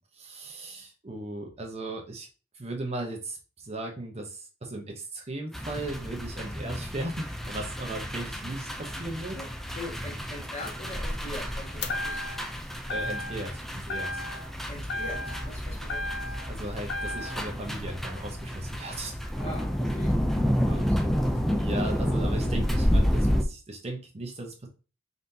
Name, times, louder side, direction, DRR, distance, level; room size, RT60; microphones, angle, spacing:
voice 1, 0.1-2.3 2.5-9.4 12.9-14.2 16.5-19.2 20.7-20.8 21.6-24.7, right 2 dB, 35° right, 2 dB, 0.8 m, -37 dB
sound 1, 5.5-23.4, equal, ahead, 0.4 m, -30 dB
voice 2, 9.3-12.8 14.7-16.3 19.3-21.1 21.5-21.7, left 1 dB, 35° left, -2 dB, 1.5 m, -42 dB
sound 2, 11.8-12.6 12.9-13.6 13.9-14.6 14.9-16.5 16.9-17.5, left 2 dB, 60° left, 0.5 m, -34 dB
4.0 x 3.7 x 2.7 m, 0.34 s
head